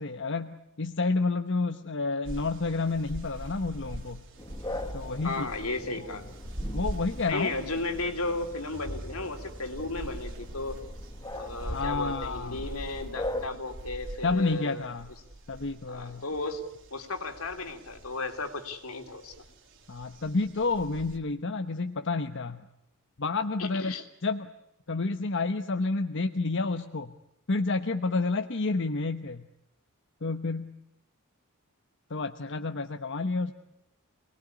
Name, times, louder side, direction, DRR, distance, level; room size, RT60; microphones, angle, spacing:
voice 1, 0.0-4.2 4.9-5.5 6.6-7.5 11.7-12.7 14.2-15.1 15.5-16.2 19.9-22.7 23.2-23.9 24.2-24.5 24.9-27.1 27.5-29.5 30.2-30.7 32.1-33.5, left 3 dB, 60° left, 6 dB, 1.1 m, -30 dB
sound 1, 2.2-21.2, right 1 dB, 60° right, 3.1 m, -42 dB
sound 2, 4.4-13.5, left 1 dB, 20° left, 1.5 m, -41 dB
voice 2, 5.2-6.3 7.3-10.8 11.3-14.9 15.9-19.3 23.6-24.0, left 2 dB, 80° left, 6 dB, 3.2 m, -34 dB
28.0 x 20.0 x 9.9 m, 0.83 s
head